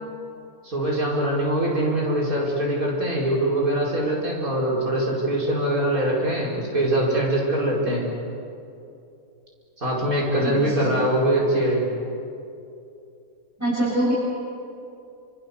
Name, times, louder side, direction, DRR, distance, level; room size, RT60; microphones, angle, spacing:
voice 1, 0.6-8.0 9.8-11.9, right 1 dB, 70° right, -4 dB, 5.3 m, -23 dB
voice 2, 10.4-10.9 13.6-14.1, right 1 dB, 10° right, -9 dB, 7.4 m, -24 dB
30.0 x 27.0 x 7.0 m, 2.7 s
omnidirectional pair, 1.6 m